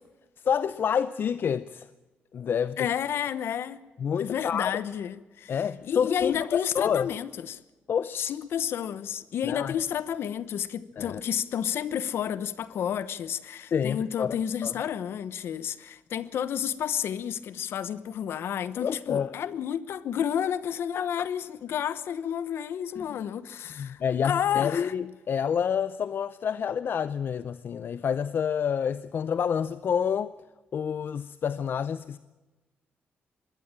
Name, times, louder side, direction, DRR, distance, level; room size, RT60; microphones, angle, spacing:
voice 1, 0.4-1.9 2.3-2.8 4.0-4.8 5.5-7.1 7.9-8.3 9.4-9.7 11.0-11.2 13.7-14.4 14.6-14.7 18.8-19.3 21.0-21.1 23.0-23.2 23.8-30.3 30.7-32.2, left 7 dB, 60° left, 0.6 m, -28 dB
voice 2, 2.8-3.8 4.2-7.6 8.2-24.9, left 9 dB, 75° left, 1.0 m, -31 dB
20.5 x 16.5 x 8.9 m
cardioid pair, 75°, 4 cm